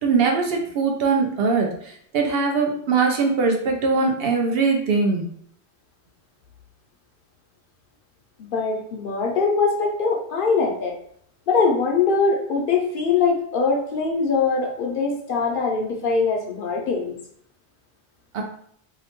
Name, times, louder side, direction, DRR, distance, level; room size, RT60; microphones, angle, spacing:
voice 1, 0.0-1.7 2.1-5.2 18.3-18.4, right 4 dB, 70° right, 2 dB, 0.8 m, -21 dB
voice 2, 8.4-10.9 11.5-17.1, left 4 dB, 65° left, 0 dB, 0.7 m, -22 dB
2.7 x 2.1 x 2.9 m, 0.66 s
omnidirectional pair, 1.0 m